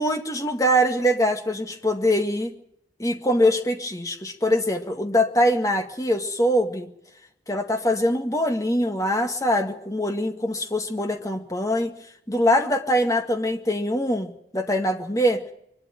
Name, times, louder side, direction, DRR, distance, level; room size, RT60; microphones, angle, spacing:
voice 1, 0.0-2.5 3.0-6.9 7.5-11.9 12.3-15.4, equal, 20° left, 5 dB, 2.0 m, -23 dB
23.5 x 12.5 x 9.3 m, 0.75 s
head